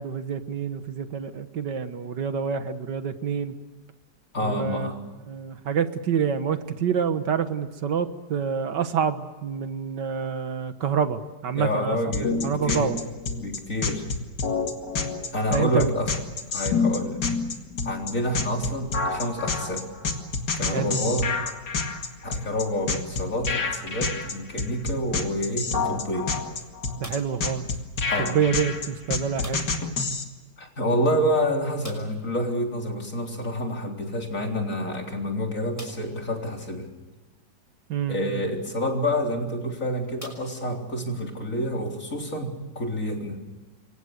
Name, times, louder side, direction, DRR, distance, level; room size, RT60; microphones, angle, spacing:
voice 1, 0.0-3.5 4.4-4.9 5.3-13.0 15.5-15.9 20.7-21.2 27.0-27.7 28.2-29.7 37.9-38.5, right 7 dB, 75° right, 10 dB, 2.0 m, -27 dB
voice 2, 4.3-5.0 11.5-12.9 13.4-14.1 15.3-16.1 16.5-17.2 17.8-19.9 20.6-21.3 22.2-26.3 28.1-28.4 30.6-36.9 38.1-43.4, equal, 45° left, 1 dB, 4.2 m, -28 dB
sound 1, 12.1-30.2, left 4 dB, 70° left, 2.8 m, -28 dB
sound 2, 27.0-27.5 29.4-29.9 30.2-30.3 30.6-30.7 31.8-32.3 34.1-34.2 34.8-34.9 35.7-36.2 37.0-37.1 39.1-39.3 40.2-41.1, equal, 10° left, 5.7 m, -44 dB
28.0 x 24.0 x 6.6 m, 1.2 s
omnidirectional pair, 1.9 m